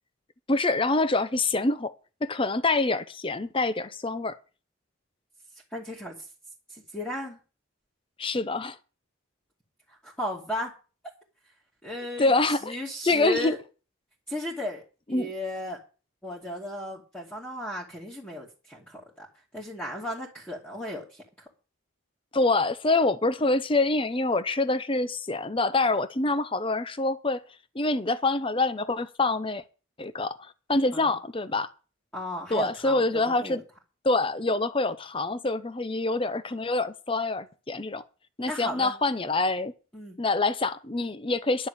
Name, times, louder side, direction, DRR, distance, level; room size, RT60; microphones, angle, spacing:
voice 1, 0.5-1.9 2.2-4.4 8.2-8.8 12.2-12.8 13.0-13.5 15.1-15.3 22.3-27.4 27.7-29.6 30.0-31.7 32.5-33.6 34.0-38.0 38.4-39.7 40.2-41.7, left 2 dB, 25° left, 0.7 m, -26 dB
voice 2, 5.7-6.1 6.7-7.4 10.0-10.7 11.8-12.3 12.6-13.6 14.3-14.8 15.1-15.8 16.2-19.3 19.5-21.2 30.9-31.1 32.1-33.6 38.5-39.0 39.9-40.2, left 1 dB, 10° left, 2.6 m, -35 dB
11.0 x 7.0 x 8.5 m
head